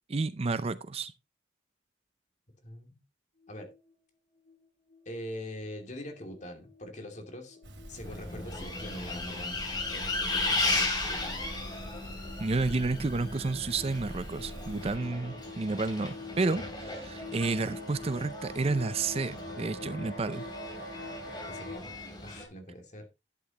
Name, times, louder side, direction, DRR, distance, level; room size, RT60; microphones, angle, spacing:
voice 1, 0.1-1.1 12.4-20.4, right 3 dB, 35° right, 0.5 m, -31 dB
sound 1, 3.4-3.9 4.5-4.7 4.9-5.2 5.5-21.8, left 1 dB, 65° left, 7.2 m, -46 dB
voice 2, 5.1-7.6 7.9-11.4 21.5-23.1, left 1 dB, 40° left, 2.6 m, -43 dB
sound 2, 7.6-15.0, equal, 70° right, 2.8 m, -45 dB
Bus, 8.0-22.4, left 2 dB, 25° left, 3.1 m, -36 dB
11.5 x 8.8 x 3.0 m
head